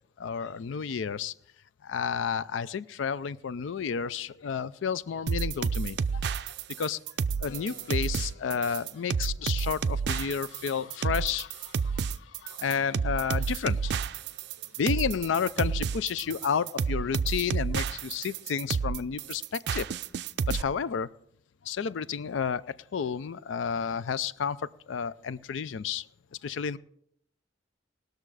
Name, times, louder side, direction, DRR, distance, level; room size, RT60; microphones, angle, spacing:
voice 1, 0.2-1.3 1.8-6.2 6.8-7.0 7.4-14.0 14.8-19.9 20.5-21.1 21.6-22.6 22.9-24.6 24.9-26.0 26.4-26.8, left 6 dB, 90° left, 17 dB, 0.4 m, -31 dB
sound 1, 5.3-20.6, right 6 dB, 65° right, 0.4 m, -30 dB
Keyboard (musical), 7.4-13.1, left 2 dB, 55° left, 4.9 m, -57 dB
19.5 x 6.6 x 4.8 m, 0.70 s
head